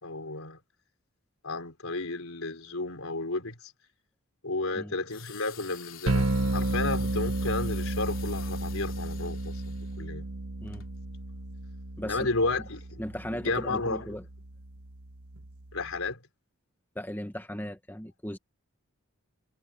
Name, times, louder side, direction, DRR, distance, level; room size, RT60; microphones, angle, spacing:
voice 1, 0.0-0.6 1.4-3.7 4.4-10.3 12.0-13.0 13.3-14.0 15.7-16.2, left 3 dB, 85° left, 3.9 m, -32 dB
sound 1, 5.1-10.0 10.7-10.9, left 13 dB, 65° left, 3.5 m, -48 dB
sound 2, 6.1-16.1, right 2 dB, 90° right, 1.3 m, -33 dB
voice 2, 12.0-12.3 13.0-14.2 16.9-18.4, equal, 10° left, 1.7 m, -37 dB
head